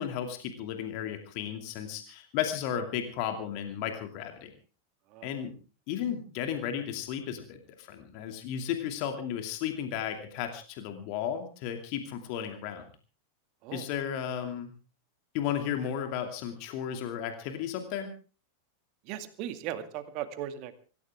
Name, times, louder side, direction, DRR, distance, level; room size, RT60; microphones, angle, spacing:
voice 1, 0.0-4.5 5.2-5.6 5.9-12.8 13.7-14.7 15.3-18.1, left 9 dB, 45° left, 6 dB, 2.6 m, -34 dB
voice 2, 19.1-20.8, right 11 dB, 40° right, 9 dB, 2.2 m, -37 dB
25.0 x 14.5 x 3.6 m, 0.37 s
figure-of-eight pair, 90°, 0 cm